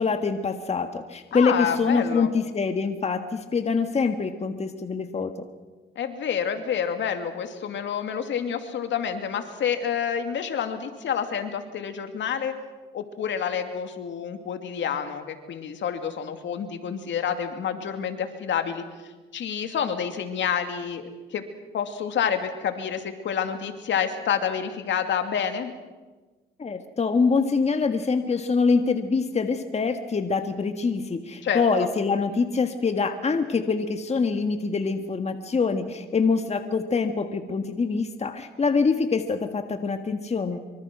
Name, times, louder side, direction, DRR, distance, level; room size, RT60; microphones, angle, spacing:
voice 1, 0.0-5.3 26.6-40.6, left 4 dB, 35° left, 7 dB, 1.7 m, -25 dB
voice 2, 1.3-2.3 6.0-12.5 12.9-21.4 21.7-25.7 31.4-31.9, left 7 dB, 65° left, 7 dB, 2.5 m, -28 dB
25.0 x 24.5 x 6.2 m, 1.3 s
cardioid pair, 90°, 20 cm